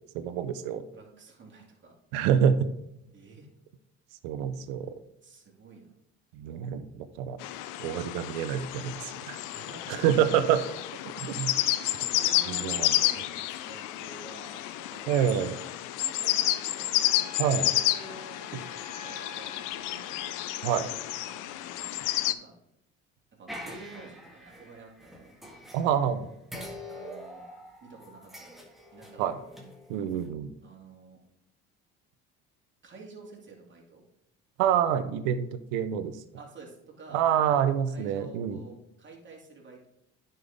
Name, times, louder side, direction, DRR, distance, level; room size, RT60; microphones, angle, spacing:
voice 1, 0.1-0.8 2.1-2.7 4.2-4.9 6.3-7.4 7.8-9.4 9.9-10.6 11.2-11.5 12.4-13.0 15.1-15.6 17.4-17.7 18.5-18.6 20.6-20.9 25.7-26.3 29.2-29.4 29.9-30.5 34.6-36.1 37.1-38.6, right 9 dB, 85° right, 12 dB, 0.7 m, -27 dB
voice 2, 0.9-2.0 3.1-3.5 5.2-5.9 9.5-10.2 11.7-15.4 16.0-17.0 17.6-20.2 21.2-21.9 22.3-22.5 23.3-25.6 26.9-27.4 27.8-28.6 28.9-29.6 30.6-31.2 32.8-34.0 36.4-37.2 37.6-39.9, right 3 dB, 35° right, -1 dB, 2.6 m, -50 dB
sound 1, 7.4-22.3, left 15 dB, 70° left, 0.6 m, -30 dB
Trumpet, 17.0-21.4, left 4 dB, 25° left, 1.6 m, -47 dB
sound 2, 23.5-26.2 26.5-30.2, equal, ahead, 1.8 m, -45 dB
9.3 x 5.6 x 3.5 m, 0.82 s
supercardioid pair, 75°, 32 cm